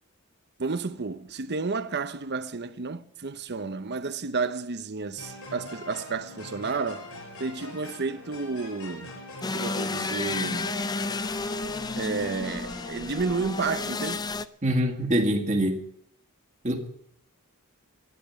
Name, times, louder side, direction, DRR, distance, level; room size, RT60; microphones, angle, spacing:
voice 1, 0.6-7.1 7.4-9.1 9.5-10.7 11.9-14.2, right 4 dB, 50° right, 0.8 m, -31 dB
sound 1, 5.2-12.9, left 2 dB, 65° left, 4.9 m, -43 dB
sound 2, 9.4-14.4, left 3 dB, 20° left, 0.5 m, -31 dB
voice 2, 14.6-15.8 16.6-16.9, right 1 dB, 35° right, 2.0 m, -24 dB
12.5 x 10.5 x 9.7 m
head